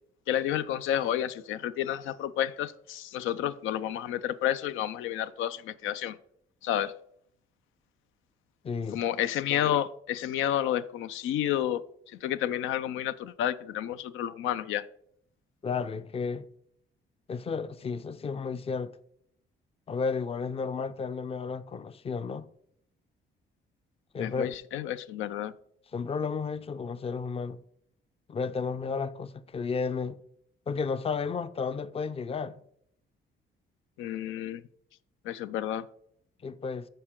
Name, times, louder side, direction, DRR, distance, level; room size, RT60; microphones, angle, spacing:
voice 1, 0.3-6.2 6.6-6.9 8.9-11.8 12.2-14.8 24.2-25.5 34.0-34.6 35.3-35.9, left 11 dB, 85° left, 0.4 m, -30 dB
voice 2, 8.6-9.0 15.6-16.5 17.3-18.9 19.9-22.5 24.1-24.6 25.9-27.6 28.3-30.2 30.7-32.6 36.4-36.9, left 5 dB, 30° left, 0.5 m, -32 dB
13.5 x 4.4 x 3.7 m
cardioid pair, 90°, 20 cm